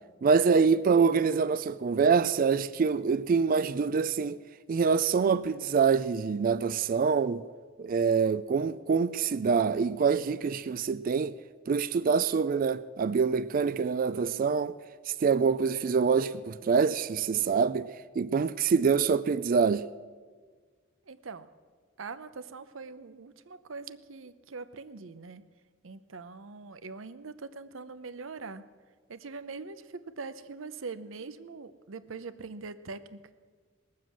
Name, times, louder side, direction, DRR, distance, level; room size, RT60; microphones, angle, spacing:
voice 1, 0.2-4.4 4.7-7.4 7.8-11.4 11.7-14.8 15.1-17.9 18.2-19.8, right 5 dB, 45° right, 0.3 m, -25 dB
voice 2, 21.1-21.5 22.0-25.4 25.8-28.6 29.1-33.3, right 4 dB, 80° right, 0.7 m, -42 dB
20.0 x 7.6 x 7.5 m
head